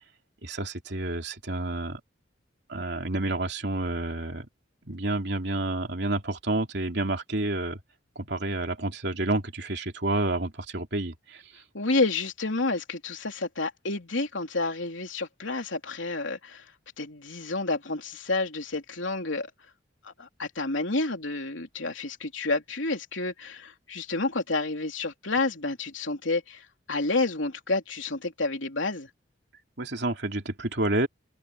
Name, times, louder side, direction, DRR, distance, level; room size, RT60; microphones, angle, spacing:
voice 1, 0.4-2.0 2.7-4.5 4.8-7.8 8.1-11.4 29.8-31.1, right 2 dB, 60° right, 3.1 m, -29 dB
voice 2, 11.7-16.6 17.0-19.5 20.0-29.1, left 3 dB, 80° left, 3.4 m, -29 dB
head